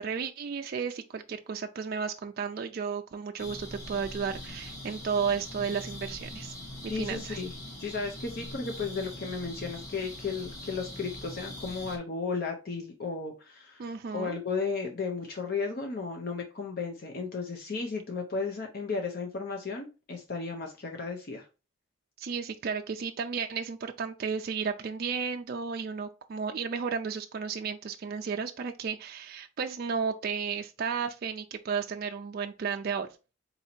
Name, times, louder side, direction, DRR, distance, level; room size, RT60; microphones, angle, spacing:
voice 1, 0.0-6.5 6.9-7.4 13.8-14.4 22.2-33.1, right 6 dB, 45° right, 0.3 m, -33 dB
sound 1, 3.4-12.0, left 1 dB, 15° left, 1.0 m, -42 dB
voice 2, 6.9-7.5 7.8-13.9 14.1-21.5, left 4 dB, 45° left, 0.6 m, -34 dB
4.0 x 2.7 x 4.2 m
head